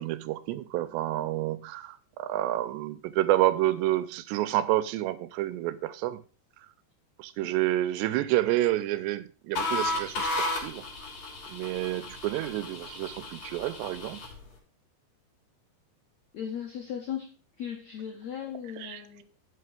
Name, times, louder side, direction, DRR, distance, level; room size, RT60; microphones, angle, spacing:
voice 1, 0.0-6.2 7.2-10.9 11.5-14.2 18.8-19.0, right 15 dB, 85° right, 2.9 m, -29 dB
sound 1, 9.6-14.4, left 2 dB, 45° left, 4.1 m, -34 dB
voice 2, 16.3-19.2, left 9 dB, 75° left, 1.6 m, -37 dB
11.5 x 5.7 x 5.0 m
omnidirectional pair, 5.0 m